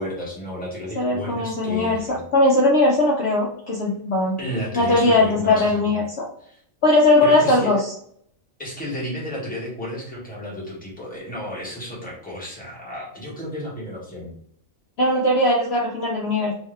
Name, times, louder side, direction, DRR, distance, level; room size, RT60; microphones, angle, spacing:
voice 1, 0.0-2.2 4.4-5.9 6.4-6.6 7.2-7.7 8.6-14.3, equal, 5° left, -6 dB, 1.2 m, -32 dB
voice 2, 1.0-4.4 4.8-6.2 6.8-7.8 15.0-16.5, left 2 dB, 60° left, -3 dB, 0.8 m, -19 dB
3.3 x 2.8 x 3.2 m, 0.65 s
omnidirectional pair, 1.4 m